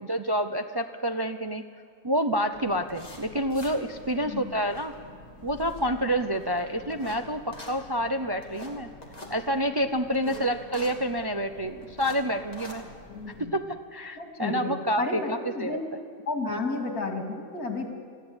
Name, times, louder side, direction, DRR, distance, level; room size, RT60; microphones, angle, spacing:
voice 1, 0.0-1.7 2.0-4.9 5.4-8.9 9.3-12.9 13.4-15.8 16.5-16.6, equal, 35° right, 7 dB, 0.4 m, -28 dB
sound 1, 2.5-13.4, left 1 dB, 25° left, 2.7 m, -46 dB
voice 2, 13.1-13.5 14.2-15.9 16.3-17.9, left 3 dB, 75° left, 3 dB, 3.2 m, -32 dB
21.5 x 14.0 x 8.9 m, 2.2 s
omnidirectional pair, 1.5 m